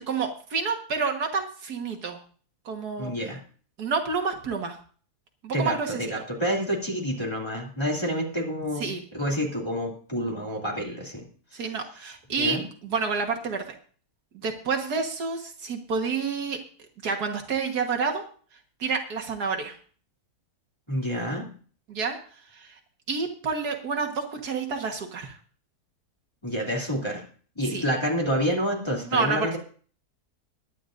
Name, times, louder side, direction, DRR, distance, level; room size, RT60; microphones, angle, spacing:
voice 1, 0.1-2.2 2.7-3.1 3.8-4.8 5.4-6.2 8.8-9.0 11.5-13.6 14.3-16.6 17.0-18.3 18.8-19.8 21.9-22.2 22.5-22.8 23.1-25.3 27.7-27.8 29.1-29.6, right 5 dB, 75° right, 3 dB, 2.0 m, -29 dB
voice 2, 3.0-3.4 5.5-11.2 12.3-12.6 20.9-21.5 26.4-27.2 27.5-29.6, equal, 15° left, -2 dB, 2.9 m, -28 dB
21.5 x 9.9 x 2.6 m, 0.43 s
omnidirectional pair, 1.7 m